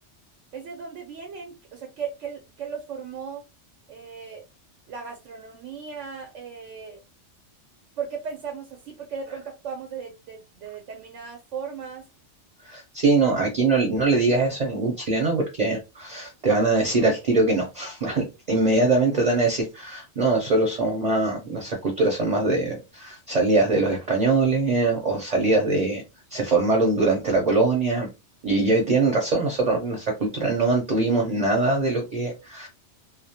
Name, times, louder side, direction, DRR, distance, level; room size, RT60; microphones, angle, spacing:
voice 1, 0.5-3.4 3.9-4.4 4.9-7.0 8.0-12.0, right 6 dB, 90° right, 1.0 m, -36 dB
voice 2, 12.6-26.0 26.3-28.1 28.4-32.7, right 3 dB, 45° right, 0.6 m, -22 dB
2.3 x 2.0 x 2.7 m
omnidirectional pair, 1.2 m